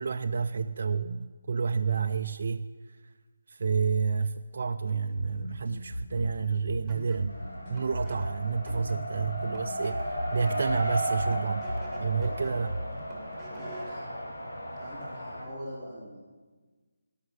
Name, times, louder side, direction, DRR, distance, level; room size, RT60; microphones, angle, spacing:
voice 1, 0.0-3.0 3.5-7.4 7.7-11.7 12.0-12.8, right 5 dB, 55° right, 6 dB, 0.4 m, -30 dB
sound 1, 5.2-13.2, equal, 55° left, 2.7 m, -38 dB
sound 2, 6.9-14.0, right 1 dB, ahead, 2.2 m, -51 dB
Race car auto racing, 7.3-15.4, equal, 75° left, 3.4 m, -35 dB
voice 2, 13.5-14.0 14.8-16.2, equal, 20° left, -9 dB, 3.1 m, -43 dB
17.0 x 5.8 x 8.0 m, 1.4 s
figure-of-eight pair, 160°, 0 cm